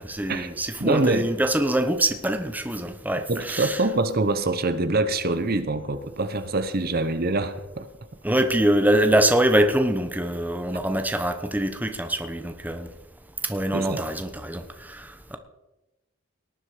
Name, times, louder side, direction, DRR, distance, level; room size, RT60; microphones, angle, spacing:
voice 1, 0.0-3.8 8.2-12.9 13.4-15.4, right 1 dB, 10° right, 7 dB, 1.0 m, -24 dB
voice 2, 0.8-1.3 3.3-7.9 13.7-14.1, right 2 dB, 45° right, 10 dB, 0.9 m, -25 dB
18.5 x 11.0 x 5.0 m, 1.0 s
head